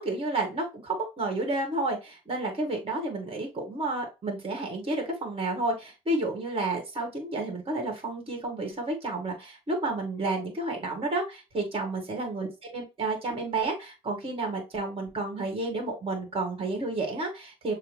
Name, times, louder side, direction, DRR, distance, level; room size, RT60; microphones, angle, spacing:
voice 1, 0.0-12.5 12.7-17.7, right 2 dB, 35° right, 1 dB, 1.9 m, -31 dB
6.7 x 2.3 x 3.1 m, 0.27 s
hypercardioid pair, 55°, 16 cm